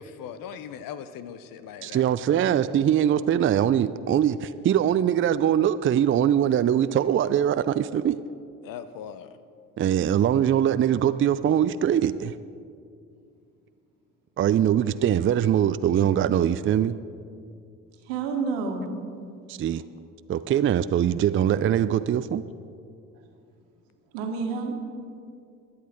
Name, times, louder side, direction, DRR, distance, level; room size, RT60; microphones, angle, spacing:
voice 1, 0.0-2.2 8.6-9.4, left 8 dB, 65° left, 13 dB, 0.9 m, -40 dB
voice 2, 1.8-8.2 9.8-12.3 14.4-16.9 19.5-19.8 20.3-22.4, right 10 dB, 35° right, 13 dB, 0.5 m, -22 dB
voice 3, 18.0-18.9 19.7-19.8 24.1-24.7, right 4 dB, 80° right, 3 dB, 1.7 m, -29 dB
22.0 x 8.5 x 4.5 m, 2.4 s
hypercardioid pair, 50°, 37 cm